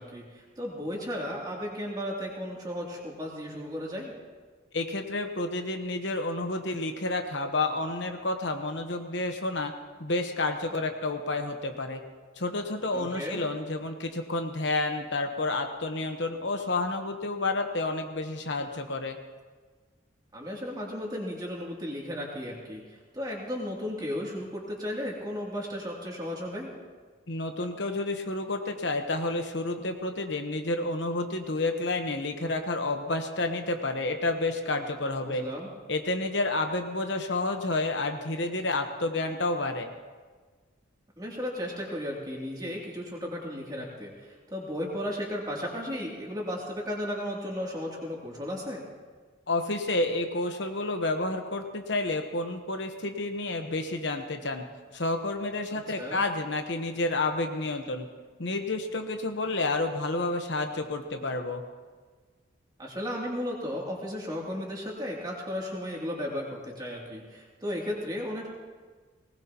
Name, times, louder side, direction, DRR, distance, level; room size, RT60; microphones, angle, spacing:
voice 1, 0.0-4.1 12.9-13.4 20.3-26.7 35.3-35.7 41.2-48.8 56.0-56.2 62.8-68.5, left 1 dB, 20° right, -3 dB, 2.8 m, -35 dB
voice 2, 4.7-9.7 10.0-12.0 12.4-19.2 27.3-35.5 35.9-39.9 49.5-54.6 54.9-58.1 58.4-61.6, left 2 dB, 60° left, 5 dB, 1.1 m, -30 dB
20.0 x 19.0 x 3.0 m, 1.5 s
head